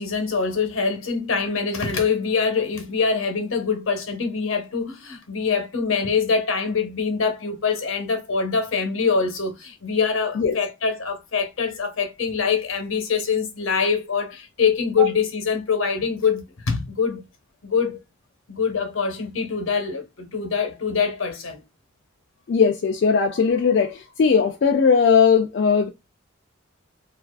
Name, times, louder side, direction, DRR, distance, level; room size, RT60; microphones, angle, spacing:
voice 1, 0.0-17.3 17.6-18.0 18.5-21.6, left 5 dB, 85° left, 0.8 m, -24 dB
voice 2, 22.5-25.9, left 5 dB, 60° left, 0.3 m, -18 dB
2.4 x 2.4 x 2.2 m
head